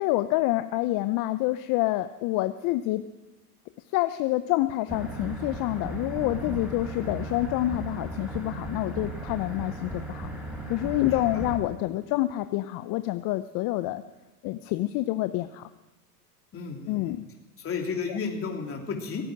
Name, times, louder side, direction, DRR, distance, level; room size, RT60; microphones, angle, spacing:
voice 1, 0.0-3.0 3.9-10.3 10.7-14.0 14.4-15.7 16.9-17.3 18.1-18.2, left 16 dB, 45° left, 11 dB, 0.7 m, -27 dB
sound 1, 4.9-11.6, right 2 dB, 5° right, 5.2 m, -36 dB
voice 2, 11.0-11.4 16.5-17.1 17.6-19.2, left 5 dB, 30° left, 1 dB, 3.2 m, -33 dB
17.0 x 9.0 x 8.9 m, 1.1 s
hypercardioid pair, 100°, 46 cm